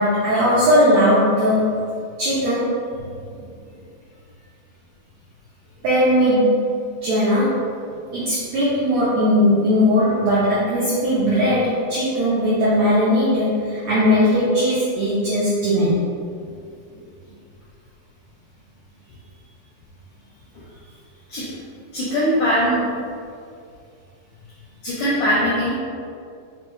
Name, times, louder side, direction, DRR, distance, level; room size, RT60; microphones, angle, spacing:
voice 1, 0.0-1.7 2.2-2.8 5.8-6.7 7.0-7.6 8.1-15.9, equal, 80° right, -10 dB, 1.6 m, -18 dB
voice 2, 3.0-3.8 8.1-8.2 9.7-9.8 16.4-16.5 16.9-17.0 21.3-21.5 21.9-22.9 24.8-25.7, equal, 80° left, -9 dB, 1.6 m, -22 dB
5.6 x 2.1 x 3.1 m, 2.3 s
omnidirectional pair, 4.2 m